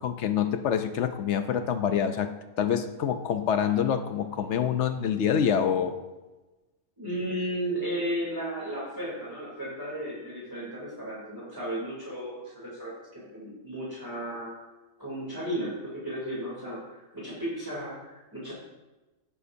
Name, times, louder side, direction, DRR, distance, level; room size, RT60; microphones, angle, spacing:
voice 1, 0.0-6.0, left 8 dB, 65° left, 9 dB, 0.8 m, -26 dB
voice 2, 7.0-14.5 15.0-18.5, right 1 dB, 15° right, -7 dB, 2.8 m, -34 dB
16.5 x 7.1 x 2.6 m, 1.1 s
omnidirectional pair, 1.4 m